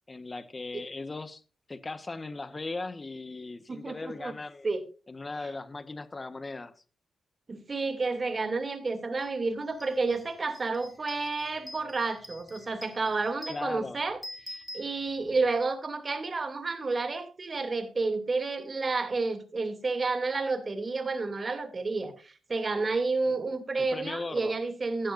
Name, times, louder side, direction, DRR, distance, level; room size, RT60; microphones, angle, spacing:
voice 1, 0.1-1.4 1.7-4.7 5.1-6.7 13.5-14.0 23.3-23.4 23.8-24.5, left 3 dB, 35° left, 1.4 m, -38 dB
voice 2, 3.7-4.3 4.6-4.9 7.5-14.2 14.5-25.1, right 3 dB, 45° right, 2.7 m, -30 dB
sound 1, 9.2-9.3 9.7-15.5, left 1 dB, 5° left, 2.7 m, -47 dB
16.0 x 11.5 x 2.6 m
cardioid pair, 60°, 0 cm